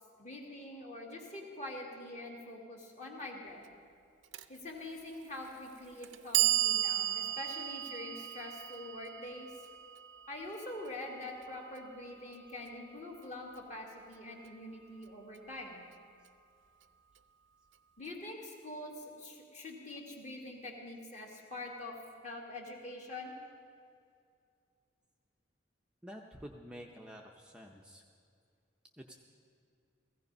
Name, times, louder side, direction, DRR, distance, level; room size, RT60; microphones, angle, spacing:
voice 1, 0.0-3.6 4.5-9.5 10.3-15.8 18.0-22.0 22.2-23.3, left 1 dB, 35° left, -1 dB, 2.1 m, -45 dB
Clock, 4.3-4.4 5.4-5.5 6.0-12.1, right 13 dB, 75° right, 0.6 m, -35 dB
voice 2, 26.0-28.0 29.0-29.1, equal, 5° right, 0 dB, 0.6 m, -49 dB
16.0 x 15.5 x 5.3 m, 2.4 s
head